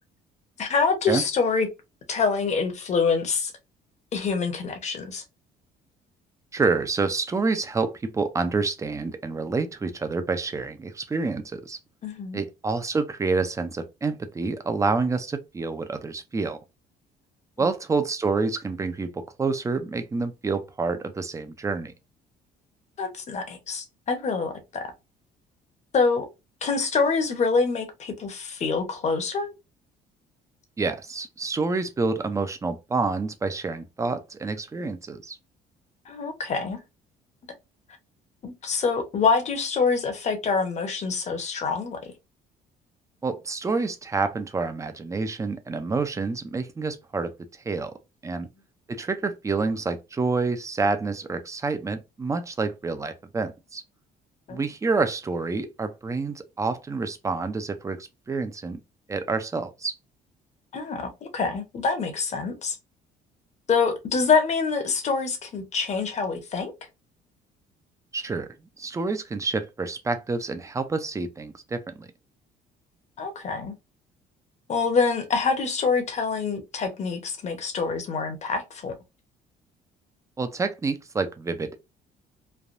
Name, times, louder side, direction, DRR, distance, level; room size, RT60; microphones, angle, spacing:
voice 1, 0.6-1.7 2.1-3.5 4.1-5.2 12.0-12.4 17.6-17.7 23.0-24.9 25.9-26.3 26.6-29.5 36.1-36.8 38.4-42.0 54.5-54.6 60.7-62.8 63.7-66.7 73.2-73.7 74.7-78.9, left 5 dB, 40° left, 0.9 m, -25 dB
voice 2, 6.5-11.8 12.3-16.6 17.6-21.9 30.8-35.4 43.2-47.3 47.6-47.9 48.2-48.5 48.9-53.8 54.5-58.8 59.1-59.9 68.1-68.5 68.8-72.1 80.4-81.9, right 4 dB, 20° right, 0.5 m, -28 dB
3.3 x 2.2 x 2.5 m
cardioid pair, 110°, 17 cm